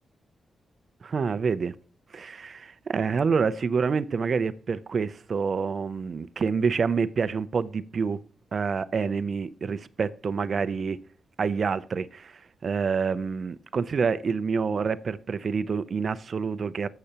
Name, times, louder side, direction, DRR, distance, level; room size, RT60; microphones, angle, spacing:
voice 1, 1.0-1.7 2.1-8.2 8.5-11.0 11.4-16.9, right 5 dB, 40° right, 0.5 m, -27 dB
15.0 x 6.7 x 2.9 m
wide cardioid pair, 160°, 0 cm